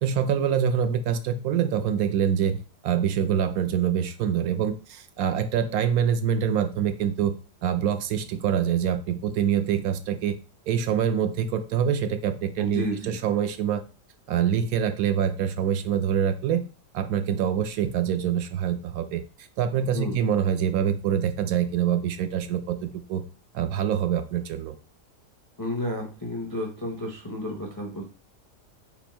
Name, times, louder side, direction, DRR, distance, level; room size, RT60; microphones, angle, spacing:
voice 1, 0.0-2.6 2.8-7.3 7.6-10.4 10.7-13.8 14.3-16.6 16.9-19.2 19.6-23.2 23.5-24.8, right 8 dB, 70° right, 10 dB, 1.0 m, -25 dB
voice 2, 12.6-13.2 19.8-20.2 25.6-28.0, left 1 dB, 25° left, 0 dB, 0.5 m, -32 dB
4.4 x 2.6 x 4.3 m, 0.34 s
omnidirectional pair, 1.7 m